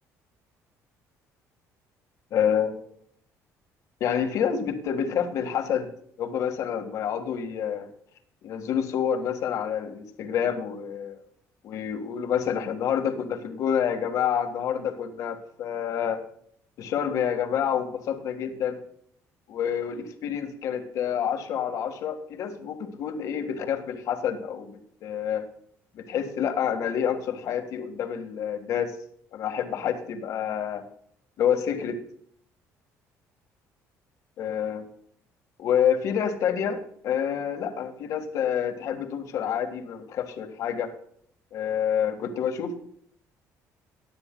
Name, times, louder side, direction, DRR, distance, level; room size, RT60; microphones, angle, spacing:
voice 1, 2.3-2.8 4.0-5.9 6.2-7.9 8.4-11.2 11.6-16.2 16.8-18.7 19.5-25.4 25.9-28.9 29.3-30.8 31.4-32.0 34.4-34.8 35.6-40.9 41.5-42.8, left 8 dB, 60° left, 6 dB, 1.7 m, -28 dB
18.0 x 9.8 x 2.3 m, 0.65 s
cardioid pair, 140°, 6 cm